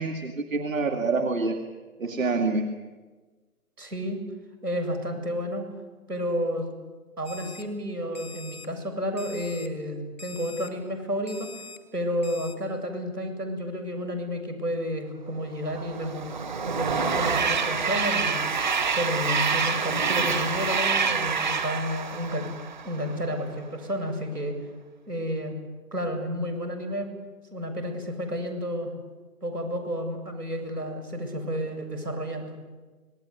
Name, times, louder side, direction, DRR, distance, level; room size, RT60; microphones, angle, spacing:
voice 1, 0.0-1.6 2.0-2.7, right 3 dB, 60° right, 6 dB, 2.5 m, -26 dB
voice 2, 3.8-4.2 4.6-5.6 6.1-6.7 7.2-11.7 11.9-16.3 16.6-18.5 18.9-22.5 22.8-24.6 25.1-25.6 25.9-27.1 27.5-28.9 29.4-32.5, equal, 90° right, 7 dB, 7.8 m, -31 dB
Alarm, 7.2-7.6 8.1-8.7 9.2-9.7 10.2-10.7 11.3-11.8 12.2-12.5, left 4 dB, 10° right, 0.8 m, -43 dB
Train, 15.7-23.1, right 5 dB, 30° right, 1.4 m, -27 dB
27.0 x 19.0 x 9.9 m, 1.3 s
figure-of-eight pair, 165°, 46 cm